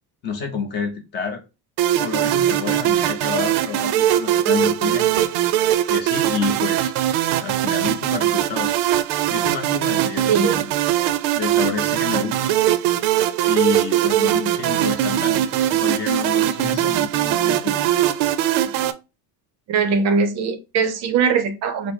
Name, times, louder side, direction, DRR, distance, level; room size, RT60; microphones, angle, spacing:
voice 1, 0.2-1.4 2.0-5.3 5.9-6.9 7.4-8.7 9.3-10.6 11.3-12.6 13.4-18.1 18.6-18.7, left 5 dB, 20° left, 0.6 m, -29 dB
sound 1, 1.8-18.9, right 12 dB, 90° right, 0.6 m, -21 dB
voice 2, 10.3-10.7 19.7-21.9, right 5 dB, 35° right, 0.5 m, -21 dB
4.5 x 2.0 x 4.4 m
cardioid pair, 180°, 47 cm